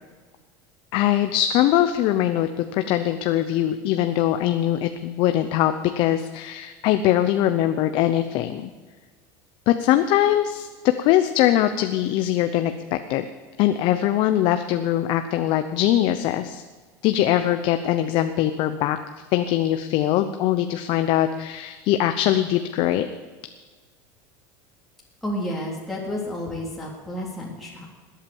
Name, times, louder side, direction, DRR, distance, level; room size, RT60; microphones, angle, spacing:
voice 1, 0.9-8.7 9.7-13.3 13.6-16.6 17.0-19.0 19.3-23.1, left 12 dB, 55° left, 8 dB, 0.8 m, -22 dB
voice 2, 25.2-27.9, left 1 dB, ahead, -5 dB, 3.3 m, -31 dB
20.0 x 8.8 x 7.1 m, 1.4 s
supercardioid pair, 125°, 10 cm